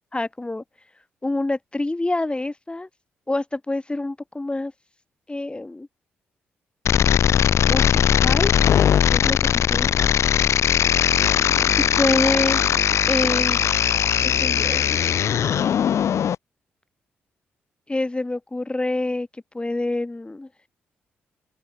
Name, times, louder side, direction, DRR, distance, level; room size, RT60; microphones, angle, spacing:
voice 1, 0.1-0.6 1.2-2.9 3.3-4.7 5.3-5.9 7.6-8.5 9.1-9.4 9.7-9.9 11.9-12.6 13.1-13.8 14.2-15.0 17.9-19.3 19.5-20.5, left 2 dB, 20° left, 4.1 m, -26 dB
sound 1, 6.8-16.3, left 9 dB, 65° left, 3.3 m, -19 dB
open air
hypercardioid pair, 45°, 5 cm